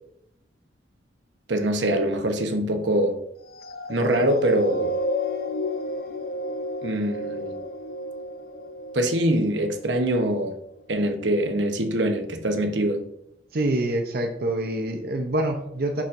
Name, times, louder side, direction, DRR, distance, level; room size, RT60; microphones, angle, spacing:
voice 1, 1.5-3.2 3.9-4.9 6.8-7.5 8.9-10.5 10.9-13.0, right 1 dB, 75° right, 4 dB, 1.0 m, -23 dB
sound 1, 3.5-10.2 10.8-10.9, left 1 dB, 55° left, 0.5 m, -32 dB
voice 2, 13.5-16.0, right 1 dB, 55° right, 4 dB, 0.6 m, -26 dB
6.9 x 6.1 x 2.6 m, 0.76 s
head